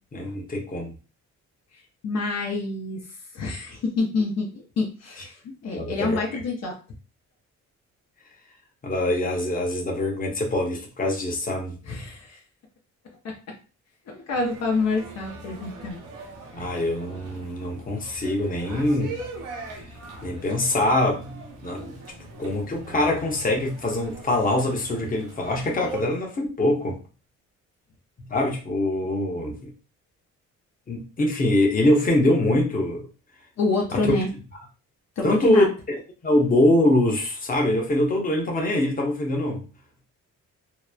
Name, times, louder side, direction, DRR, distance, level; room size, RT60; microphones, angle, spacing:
voice 1, 0.1-1.0 5.7-6.4 8.8-11.8 16.5-19.1 20.2-21.9 22.4-27.0 28.2-29.7 30.9-33.0 33.9-34.1 35.2-35.7 36.2-39.6, left 1 dB, 30° left, 0 dB, 0.8 m, -23 dB
voice 2, 2.0-3.0 3.3-6.8 11.9-12.4 13.2-13.4 14.1-16.0 16.6-16.7 33.6-34.3 35.2-35.7, left 3 dB, 60° left, 1 dB, 0.7 m, -27 dB
sound 1, 14.3-26.1, right 2 dB, 90° right, 0.8 m, -41 dB
2.9 x 2.0 x 2.3 m, 0.34 s
cardioid pair, 90°, 30 cm